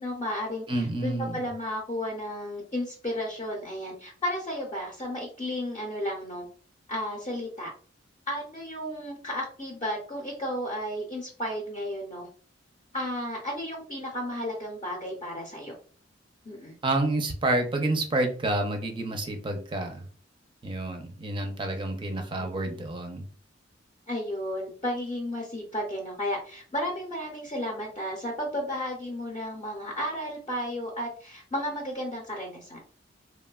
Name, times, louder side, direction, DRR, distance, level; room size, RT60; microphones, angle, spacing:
voice 1, 0.0-6.5 6.9-7.7 8.3-12.3 12.9-15.7 16.4-16.8 22.4-22.8 24.1-32.8, left 1 dB, 30° left, -2 dB, 0.6 m, -33 dB
voice 2, 0.7-1.5 16.8-20.1 20.6-23.2, right 2 dB, 25° right, 4 dB, 0.5 m, -29 dB
3.1 x 2.1 x 2.2 m, 0.43 s
head